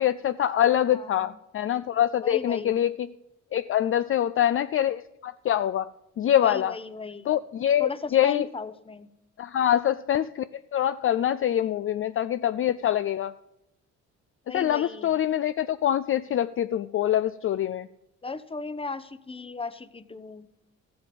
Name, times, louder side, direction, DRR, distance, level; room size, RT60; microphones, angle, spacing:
voice 1, 0.0-3.1 3.5-5.9 6.2-6.8 7.3-8.5 9.4-10.4 10.7-13.4 14.5-17.9, left 11 dB, 45° left, 12 dB, 0.4 m, -24 dB
voice 2, 0.9-1.4 2.2-2.8 6.4-7.3 7.8-9.1 14.5-15.1 18.2-20.5, left 4 dB, 20° left, 13 dB, 0.8 m, -36 dB
14.0 x 7.8 x 5.2 m, 0.88 s
cardioid pair, 90°, 30 cm